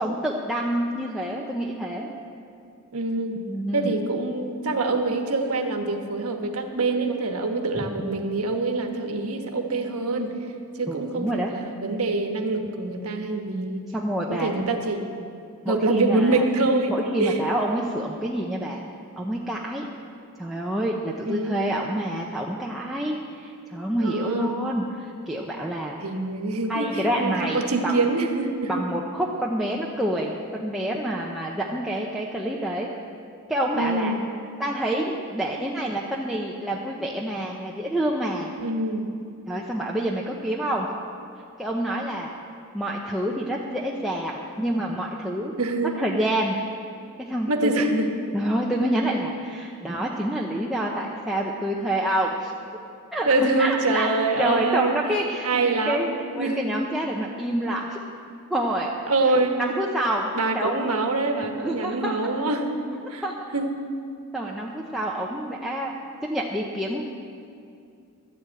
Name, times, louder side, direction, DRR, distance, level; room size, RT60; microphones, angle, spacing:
voice 1, 0.0-2.1 3.4-3.9 7.8-7.9 10.9-11.5 13.9-14.5 15.6-16.4 16.9-18.8 19.2-19.8 20.4-25.9 26.7-27.9 28.7-32.9 33.5-34.1 34.6-38.5 39.5-40.9 41.6-42.3 42.7-45.5 46.0-46.6 47.2-47.9 48.3-52.5 53.1-53.3 53.6-54.1 54.4-55.5 55.9-56.1 56.3-58.0 58.5-58.9 59.6-60.9 61.6-62.1 63.2-63.3 64.3-65.9 66.3-67.0, right 1 dB, ahead, -4 dB, 0.7 m, -27 dB
voice 2, 2.9-3.4 3.7-10.3 10.7-13.8 14.3-15.2 15.7-16.9 17.2-17.4 21.2-21.6 24.0-24.5 26.0-28.8 33.7-34.1 38.6-39.1 45.6-45.9 47.5-48.1 53.3-54.9 55.4-56.6 59.1-59.6 60.3-62.8 63.1-63.2 63.5-63.8, right 2 dB, 85° right, 4 dB, 1.3 m, -25 dB
12.5 x 7.9 x 8.6 m, 2.4 s
head